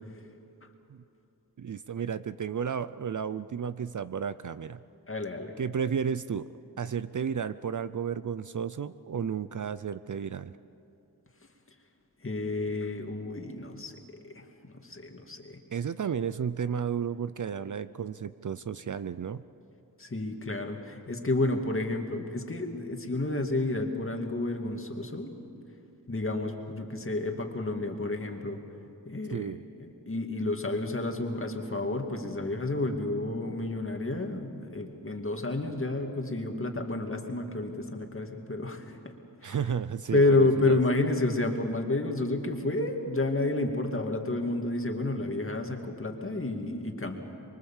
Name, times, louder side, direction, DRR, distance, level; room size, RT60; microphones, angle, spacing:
voice 1, 1.6-4.8 5.6-6.5 6.8-10.6 15.7-19.4 29.3-29.6 39.4-40.8, right 7 dB, 50° right, 14 dB, 0.5 m, -33 dB
voice 2, 5.1-5.5 12.2-13.9 14.2-15.6 20.0-25.3 26.1-28.6 29.1-29.5 29.8-39.1 39.4-39.6 40.1-47.2, left 2 dB, 35° left, 3 dB, 2.2 m, -30 dB
24.5 x 23.5 x 7.3 m, 2.7 s
wide cardioid pair, 95°, 39 cm